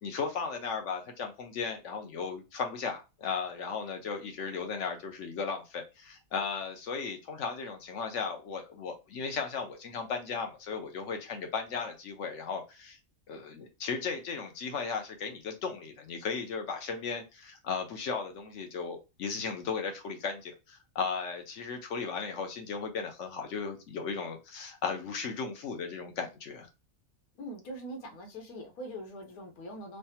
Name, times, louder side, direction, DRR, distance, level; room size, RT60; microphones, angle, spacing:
voice 1, 0.0-13.0 13.3-26.7, left 5 dB, 65° left, 0.9 m, -36 dB
voice 2, 27.4-30.0, equal, 85° left, 1.2 m, -42 dB
3.2 x 2.2 x 2.7 m
omnidirectional pair, 1.5 m